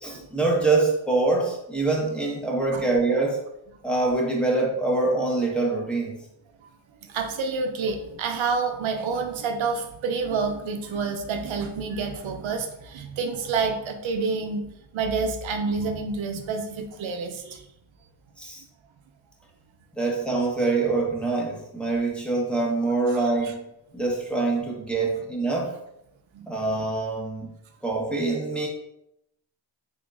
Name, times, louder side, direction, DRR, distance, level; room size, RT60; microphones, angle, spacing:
voice 1, 0.0-3.4 3.8-6.2 18.4-18.6 19.9-23.6 23.9-25.7 26.5-27.5 27.8-28.7, right 3 dB, ahead, -3 dB, 1.2 m, -25 dB
voice 2, 7.1-17.7 20.0-20.1 23.1-23.5 26.3-26.5, right 4 dB, 80° right, 5 dB, 0.6 m, -28 dB
3.7 x 3.6 x 2.5 m, 0.82 s
cardioid pair, 60°, 46 cm